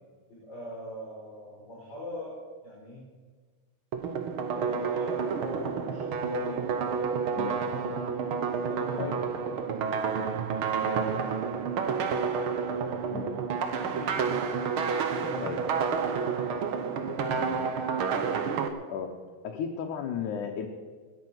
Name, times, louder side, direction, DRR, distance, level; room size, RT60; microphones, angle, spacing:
voice 1, 0.3-2.3 2.6-3.0 4.5-8.0 8.5-12.0 12.4-14.4 15.1-16.4 16.9-18.0, left 1 dB, 35° left, -4 dB, 5.0 m, -42 dB
sound 1, 3.9-18.7, right 6 dB, 60° right, 1.6 m, -30 dB
voice 2, 19.4-20.7, left 7 dB, 90° left, 2 dB, 2.6 m, -34 dB
20.0 x 8.8 x 7.9 m, 1.5 s
omnidirectional pair, 3.4 m